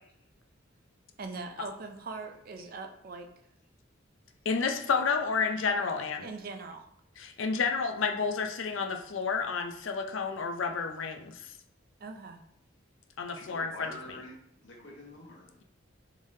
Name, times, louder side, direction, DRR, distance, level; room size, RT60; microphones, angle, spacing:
voice 1, 1.2-3.3 6.2-6.9 12.0-12.4, right 3 dB, 50° right, 5 dB, 0.4 m, -41 dB
voice 2, 4.5-6.3 7.2-11.4 13.2-13.9, left 5 dB, 85° left, 5 dB, 0.5 m, -30 dB
voice 3, 13.3-15.6, left 1 dB, 65° left, -3 dB, 1.2 m, -47 dB
3.7 x 3.2 x 2.7 m, 0.72 s
head